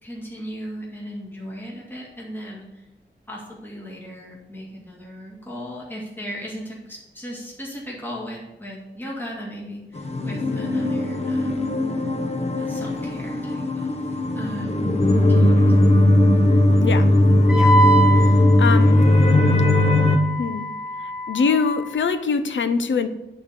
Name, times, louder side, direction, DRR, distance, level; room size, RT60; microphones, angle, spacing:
voice 1, 0.0-2.8 3.3-11.7 12.6-16.0, equal, 10° left, -4 dB, 2.0 m, -37 dB
sound 1, 10.0-20.2, left 1 dB, 35° left, 0.9 m, -18 dB
Wind instrument woodwind instrument, 17.5-22.1, right 1 dB, 5° right, 0.9 m, -25 dB
voice 2, 18.1-19.0 20.4-20.7 21.3-23.1, left 5 dB, 80° left, 11 dB, 0.8 m, -23 dB
10.5 x 4.3 x 6.8 m, 0.95 s
wide cardioid pair, 145°, 19 cm